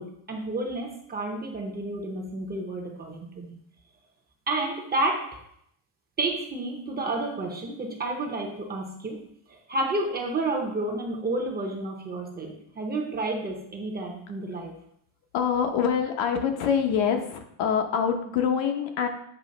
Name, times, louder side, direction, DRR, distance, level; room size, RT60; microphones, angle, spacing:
voice 1, 0.0-3.5 4.5-5.3 6.2-14.7, right 2 dB, 20° right, 1 dB, 0.7 m, -30 dB
voice 2, 15.3-19.1, left 7 dB, 70° left, 5 dB, 1.0 m, -25 dB
8.0 x 3.1 x 5.2 m, 0.72 s
cardioid pair, 180°, 49 cm